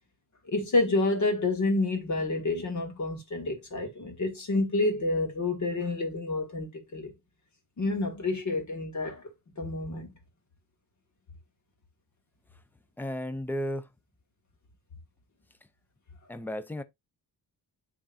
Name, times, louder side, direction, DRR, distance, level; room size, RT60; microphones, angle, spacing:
voice 1, 0.5-7.1 7.8-9.2 9.6-10.1, left 2 dB, 45° left, 1.9 m, -29 dB
voice 2, 13.0-13.9 16.3-16.8, equal, 5° left, 0.3 m, -33 dB
10.0 x 3.6 x 2.6 m
wide cardioid pair, 180°, 40 cm